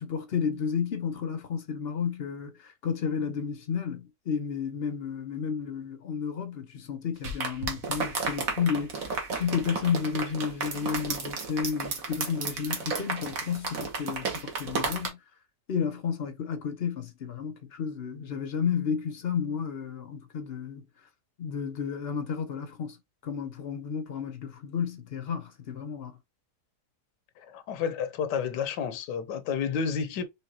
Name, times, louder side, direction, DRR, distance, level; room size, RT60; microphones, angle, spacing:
voice 1, 0.0-15.2 15.7-20.9 21.4-23.0 23.2-26.1, left 7 dB, 55° left, 0.7 m, -32 dB
sound 1, 7.2-15.1, right 4 dB, 55° right, 1.5 m, -33 dB
voice 2, 27.4-30.2, left 6 dB, 85° left, 1.3 m, -30 dB
4.5 x 3.5 x 2.8 m
omnidirectional pair, 1.8 m